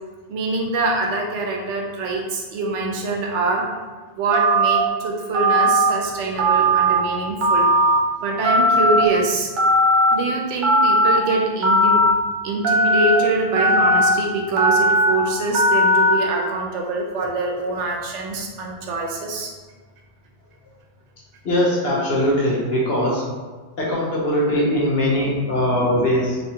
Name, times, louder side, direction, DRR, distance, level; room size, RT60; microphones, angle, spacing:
voice 1, 0.3-3.7 4.2-7.7 8.2-9.5 10.1-12.0 12.4-19.5, right 3 dB, 85° right, 0 dB, 0.9 m, -24 dB
Telephone, 4.3-4.8 5.3-5.9 6.4-7.0 7.4-8.0 8.4-9.0 9.6-10.1 10.6-11.2 11.6-12.1 12.6-13.2 13.6-14.1 14.6-15.1 15.5-16.1, equal, 55° right, 0.6 m, -17 dB
voice 2, 21.4-23.2 23.8-26.4, left 1 dB, 60° left, -5 dB, 1.1 m, -20 dB
3.3 x 2.6 x 2.8 m, 1.4 s
omnidirectional pair, 1.2 m